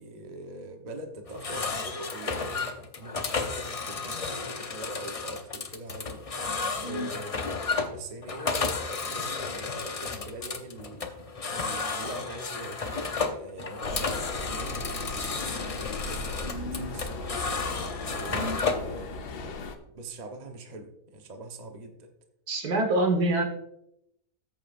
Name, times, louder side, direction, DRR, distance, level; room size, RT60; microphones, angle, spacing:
voice 1, 0.0-6.2 6.8-15.6 15.9-17.4 18.1-19.1 19.4-22.1, right 2 dB, 30° right, 4 dB, 0.9 m, -43 dB
sound 1, 1.3-18.9, left 4 dB, 40° left, 0.5 m, -32 dB
voice 2, 6.8-7.1 16.4-16.9 18.3-18.6 22.5-23.4, right 2 dB, 70° right, 4 dB, 2.0 m, -27 dB
sound 2, 13.8-19.8, left 3 dB, 80° left, 1.4 m, -37 dB
13.5 x 7.6 x 2.5 m, 0.80 s
omnidirectional pair, 1.7 m